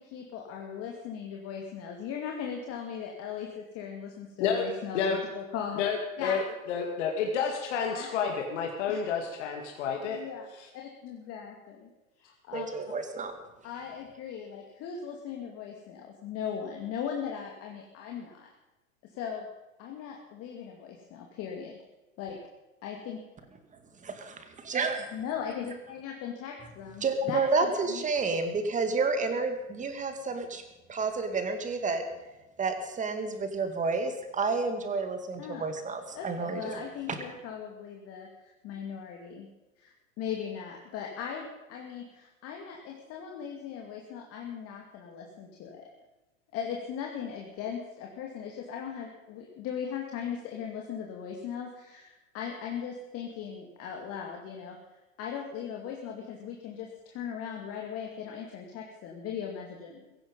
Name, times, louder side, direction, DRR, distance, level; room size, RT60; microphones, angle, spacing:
voice 1, 0.0-5.9 6.2-6.4 7.9-8.5 8.9-9.0 10.1-11.9 12.2-12.7 13.6-18.5 19.0-19.5 19.8-21.8 22.2-22.4 22.8-23.2 25.1-28.0 35.4-35.6 36.1-39.5 39.8-45.9 46.5-54.8 55.2-60.0, left 7 dB, 35° left, 1 dB, 2.4 m, -38 dB
voice 2, 5.8-6.4 6.7-10.2, left 6 dB, 55° left, 2 dB, 2.6 m, -29 dB
voice 3, 12.5-13.3 24.7-25.1 27.0-30.6 30.9-32.0 32.6-36.7, right 4 dB, 20° right, 7 dB, 2.3 m, -30 dB
17.0 x 15.0 x 5.5 m, 1.1 s
hypercardioid pair, 105°, 41 cm